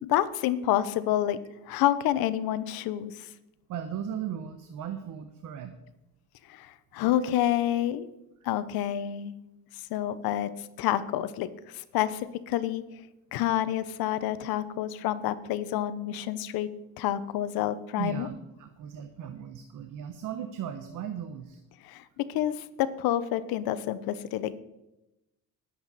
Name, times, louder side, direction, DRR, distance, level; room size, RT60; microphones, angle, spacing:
voice 1, 0.0-1.4 1.7-3.3 6.5-8.1 8.4-9.3 9.9-11.5 11.7-12.8 13.3-16.7 17.0-18.3 21.8-24.6, left 12 dB, 80° left, 14 dB, 1.0 m, -28 dB
voice 2, 3.7-5.8 18.0-18.3 18.6-21.6, right 9 dB, 60° right, 8 dB, 1.1 m, -37 dB
19.5 x 8.0 x 4.2 m, 0.92 s
cardioid pair, 125°, 36 cm